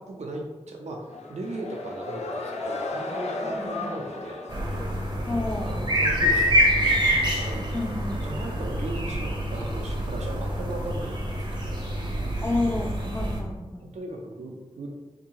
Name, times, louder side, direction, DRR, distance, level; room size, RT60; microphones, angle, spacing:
voice 1, 0.0-4.4 5.6-7.7 8.2-11.9 13.8-14.9, right 2 dB, 85° right, 0 dB, 0.5 m, -37 dB
sound 1, 1.1-5.6, left 2 dB, 80° left, 0.4 m, -34 dB
voice 2, 3.4-3.9 5.3-5.7 7.7-8.2 12.4-13.9, left 2 dB, 20° left, 1 dB, 0.5 m, -30 dB
sound 2, 4.5-13.4, equal, 45° right, 0.7 m, -26 dB
3.7 x 2.6 x 3.0 m, 1.2 s
wide cardioid pair, 70°, 11 cm